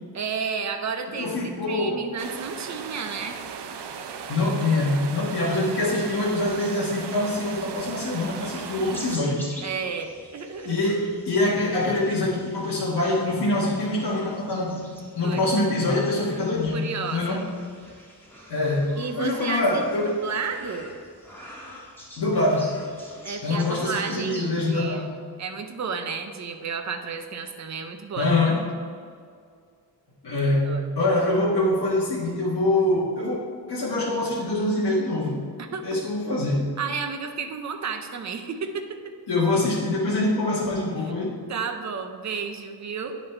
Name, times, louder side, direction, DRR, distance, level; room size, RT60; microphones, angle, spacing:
voice 1, 0.1-3.4 9.6-10.8 15.2-15.4 16.7-17.4 19.0-21.0 23.2-25.1 25.4-28.3 30.6-30.9 35.7-35.9 36.8-38.8 41.0-41.1 41.5-43.2, right 5 dB, 45° right, 5 dB, 0.6 m, -32 dB
voice 2, 1.2-2.0 4.3-9.4 10.6-17.5 18.5-20.2 22.2-22.8 23.4-25.2 28.2-28.7 30.2-35.4 35.8-36.7 39.3-41.4, left 2 dB, 70° left, -7 dB, 1.4 m, -24 dB
sound 1, 2.2-9.2, right 6 dB, 90° right, 0.6 m, -37 dB
sound 2, 5.3-24.7, equal, 5° left, 1.3 m, -46 dB
9.5 x 4.1 x 4.4 m, 2.1 s
wide cardioid pair, 175°, 40 cm